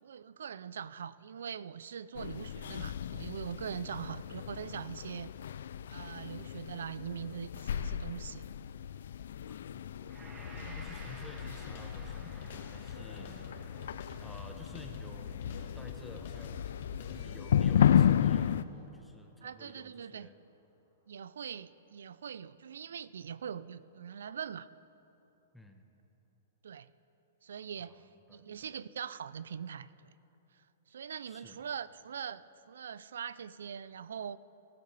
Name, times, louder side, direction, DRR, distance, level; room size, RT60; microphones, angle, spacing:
voice 1, 0.0-5.3 5.9-8.5 10.6-10.8 19.4-20.3 21.1-24.7 26.6-26.9 27.4-30.2 30.5-34.4, right 7 dB, 80° right, 18 dB, 0.4 m, -42 dB
sound 1, 2.1-18.6, left 9 dB, 75° left, 0.3 m, -33 dB
voice 2, 9.5-20.4 25.5-25.9 27.8-28.7 31.3-31.6, left 1 dB, ahead, 3 dB, 1.0 m, -53 dB
Gong, 10.1-18.5 18.9-19.0, right 2 dB, 15° right, 1.6 m, -56 dB
sound 2, 11.4-17.7, left 3 dB, 60° left, 1.9 m, -49 dB
19.5 x 13.0 x 3.3 m, 2.9 s
hypercardioid pair, 145°, 0 cm